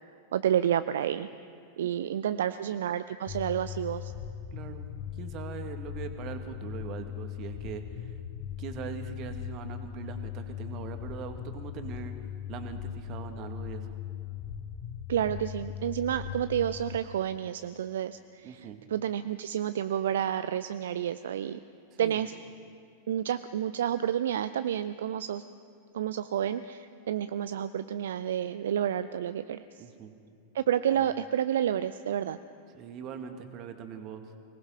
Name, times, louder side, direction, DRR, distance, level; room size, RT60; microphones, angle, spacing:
voice 1, 0.3-1.3 1.8-4.1 15.1-21.6 22.0-22.4 23.1-25.4 25.9-29.8 30.5-32.4, right 10 dB, 60° right, 13 dB, 0.5 m, -30 dB
voice 2, 1.8-2.5 4.5-4.9 5.2-8.1 8.6-12.1 12.5-14.0 18.4-18.8 21.9-22.2 29.8-30.1 30.9-31.1 32.7-34.2, right 7 dB, 35° right, 7 dB, 2.0 m, -41 dB
sound 1, 3.3-17.0, left 10 dB, 35° left, 1.0 m, -39 dB
25.0 x 19.0 x 5.7 m, 2.6 s
figure-of-eight pair, 90°, 0 cm